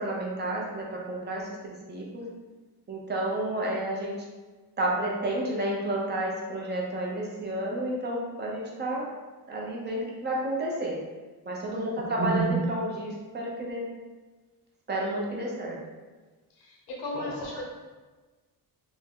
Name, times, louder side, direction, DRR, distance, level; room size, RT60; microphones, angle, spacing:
voice 1, 0.0-2.3 2.9-4.2 4.8-9.1 9.5-11.0 11.5-13.9 14.9-15.8 17.1-17.6, right 1 dB, 25° right, -2 dB, 0.6 m, -30 dB
voice 2, 11.7-12.1 16.5-17.6, left 2 dB, 85° left, -2 dB, 1.0 m, -37 dB
3.5 x 2.1 x 3.5 m, 1.3 s
cardioid pair, 140°, 38 cm